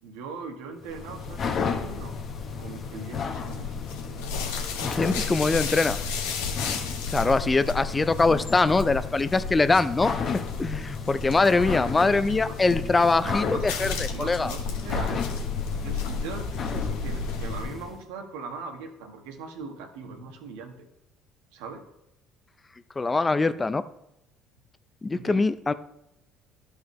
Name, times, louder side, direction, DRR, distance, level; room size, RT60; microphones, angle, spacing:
voice 1, 0.0-2.1 2.6-3.9 7.2-7.4 11.3-12.6 13.0-13.7 14.1-15.3 15.8-20.9 21.5-21.8 25.1-25.4, right 4 dB, 85° right, 4 dB, 1.2 m, -40 dB
sound 1, 0.8-18.0, left 6 dB, 45° left, 0.9 m, -34 dB
sound 2, 0.9-17.6, left 4 dB, 85° left, 1.0 m, -34 dB
voice 2, 4.9-6.0 7.1-10.1 10.6-14.5 23.0-23.8 25.0-25.7, left 3 dB, 20° left, 13 dB, 0.4 m, -23 dB
12.0 x 4.8 x 3.1 m, 0.86 s
supercardioid pair, 80°, 0 cm